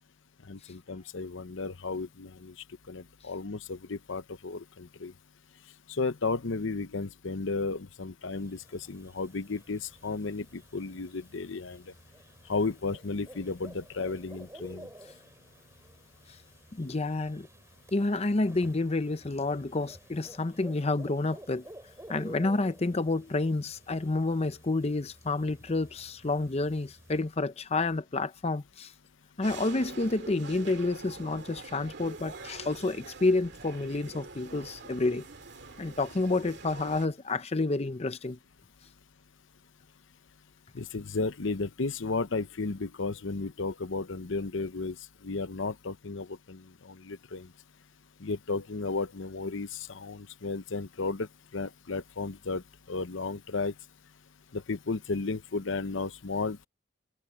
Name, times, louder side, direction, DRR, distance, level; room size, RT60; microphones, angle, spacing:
voice 1, 0.5-2.5 2.9-5.1 5.9-11.8 12.5-14.9 40.7-45.0 45.2-47.5 48.2-51.3 51.5-52.6 52.9-53.7 54.5-56.7, left 3 dB, 70° left, 0.8 m, -33 dB
sound 1, 8.3-27.2, right 1 dB, 15° right, 4.4 m, -52 dB
voice 2, 16.7-17.5 17.9-21.7 22.1-28.9 29.4-35.2 35.8-38.4, left 2 dB, 30° left, 0.6 m, -29 dB
sound 2, 29.4-37.1, right 3 dB, 60° right, 2.4 m, -45 dB
head